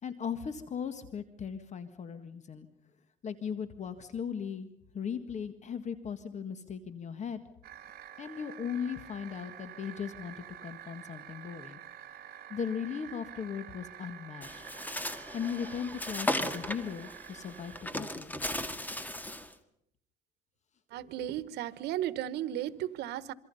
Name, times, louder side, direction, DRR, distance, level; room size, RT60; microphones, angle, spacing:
voice 1, 0.0-2.7 3.2-4.7 4.9-7.4 8.2-11.8 12.1-14.6 15.3-18.3, left 7 dB, 45° left, 11 dB, 1.7 m, -38 dB
sound 1, 7.6-17.9, right 11 dB, 65° right, 2.4 m, -48 dB
Bird, 14.4-19.5, left 1 dB, 10° left, 2.0 m, -36 dB
voice 2, 20.9-23.3, right 12 dB, 80° right, 17 dB, 1.2 m, -35 dB
26.5 x 24.5 x 5.6 m, 0.71 s
cardioid pair, 110°, 17 cm